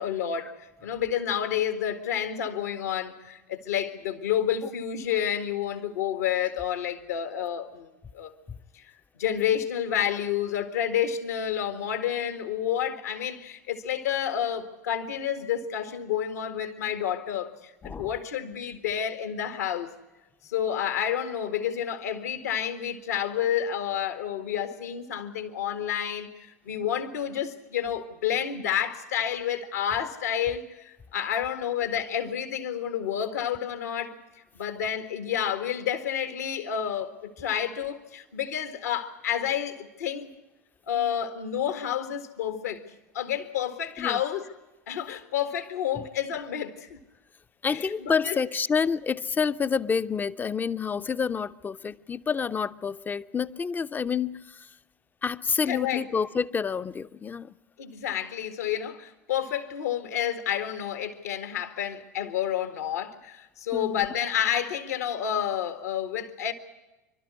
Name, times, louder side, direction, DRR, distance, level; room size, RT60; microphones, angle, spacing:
voice 1, 0.0-8.4 8.7-8.9 9.2-19.9 20.5-26.3 26.7-34.1 34.6-40.3 40.9-42.8 43.1-44.5 44.9-47.0 47.7-48.4 55.7-56.0 57.8-66.5, left 9 dB, 70° left, 1.9 m, -30 dB
voice 2, 47.6-54.7 55.2-57.5 63.7-64.1, left 6 dB, 20° left, 0.7 m, -28 dB
27.5 x 12.5 x 9.7 m
figure-of-eight pair, 75°, 9 cm